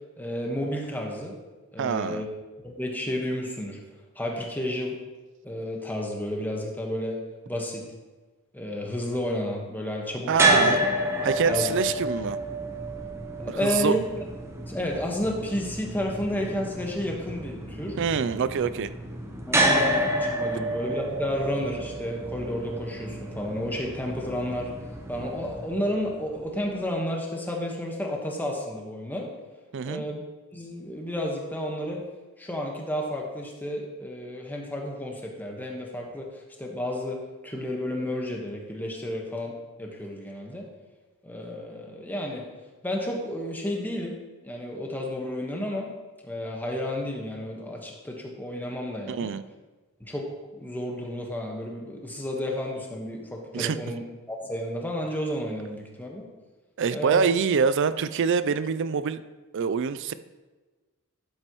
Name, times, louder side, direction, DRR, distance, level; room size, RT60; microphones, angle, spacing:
voice 1, 0.2-1.3 1.7-2.3 2.6-3.8 4.1-5.0 5.4-7.2 7.5-7.9 8.5-10.8 11.5-11.7 13.4-14.0 14.7-18.0 19.5-24.7 25.1-29.3 29.8-30.2 30.5-32.0 32.4-40.7 41.2-42.5 42.8-44.2 44.4-45.9 46.2-49.3 50.0-50.3 50.6-56.3 56.9-57.3, left 1 dB, 10° left, 0 dB, 1.3 m, -31 dB
voice 2, 1.8-2.2 10.3-10.8 11.2-12.4 13.6-13.9 18.0-18.9 29.7-30.0 49.1-49.4 53.5-53.8 56.8-59.2 59.5-60.1, right 6 dB, 55° right, 14 dB, 0.4 m, -25 dB
sound 1, 10.3-26.5, right 1 dB, 10° right, 0.8 m, -29 dB
11.5 x 7.8 x 3.0 m, 1.3 s
head